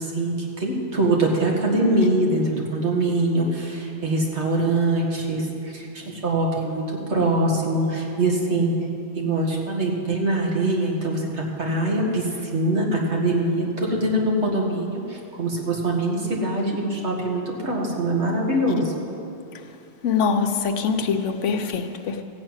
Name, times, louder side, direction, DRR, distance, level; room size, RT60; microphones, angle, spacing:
voice 1, 0.0-8.7 9.2-19.0, right 2 dB, 65° right, 2.1 m, -23 dB
voice 2, 20.0-22.2, left 5 dB, 80° left, 1.1 m, -23 dB
15.0 x 6.0 x 8.9 m
omnidirectional pair, 1.2 m